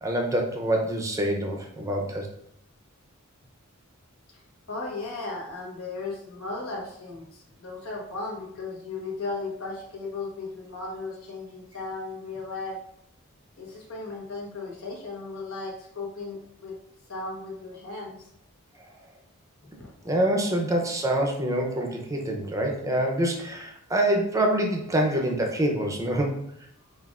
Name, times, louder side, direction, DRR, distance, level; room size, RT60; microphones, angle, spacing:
voice 1, 0.0-2.3 20.0-26.4, right 1 dB, 15° right, 1 dB, 0.6 m, -26 dB
voice 2, 4.7-12.8 13.6-16.7 17.1-18.3 19.7-20.1, left 3 dB, 70° left, -3 dB, 1.2 m, -36 dB
5.8 x 2.5 x 2.4 m, 0.73 s
head